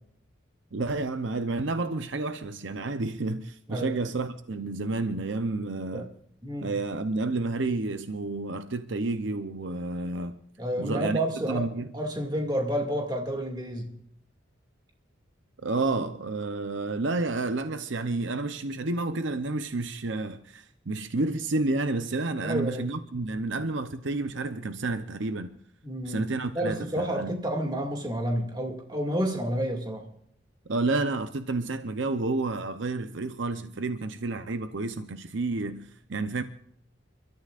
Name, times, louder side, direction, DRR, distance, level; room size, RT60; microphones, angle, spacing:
voice 1, 0.7-6.1 6.6-10.4 10.8-11.2 11.5-11.9 15.6-25.5 26.0-27.4 30.7-36.4, right 3 dB, 65° right, 0.8 m, -30 dB
voice 2, 6.4-6.8 10.6-13.9 22.4-22.9 25.8-26.2 26.5-30.1, right 1 dB, 20° right, 2.2 m, -30 dB
29.5 x 13.5 x 2.5 m
head